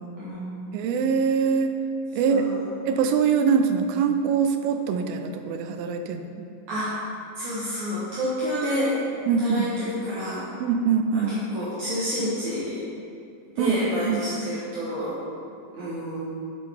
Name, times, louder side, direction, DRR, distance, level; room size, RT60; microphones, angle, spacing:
voice 1, 0.2-0.8 2.3-2.7 6.7-6.9 7.4-8.9 9.4-10.4 11.1-12.9 13.6-15.2 15.7-16.2, equal, 65° right, -10 dB, 2.4 m, -29 dB
voice 2, 0.7-1.7 2.1-2.4 2.9-6.2 9.3-9.7 10.6-11.3 13.6-14.2, right 6 dB, 85° right, 7 dB, 2.4 m, -23 dB
8.3 x 6.8 x 3.4 m, 2.5 s
omnidirectional pair, 4.1 m